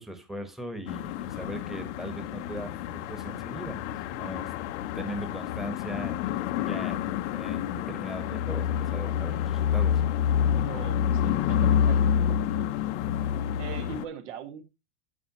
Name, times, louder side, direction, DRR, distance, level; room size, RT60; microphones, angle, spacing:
voice 1, 0.0-4.5 4.9-7.0 7.3-10.0, right 1 dB, ahead, 1.1 m, -39 dB
sound 1, 0.9-14.0, left 9 dB, 70° left, 0.8 m, -28 dB
voice 2, 10.7-12.6 13.6-14.6, right 8 dB, 80° right, 1.8 m, -41 dB
9.4 x 7.1 x 2.9 m
supercardioid pair, 150°, 36 cm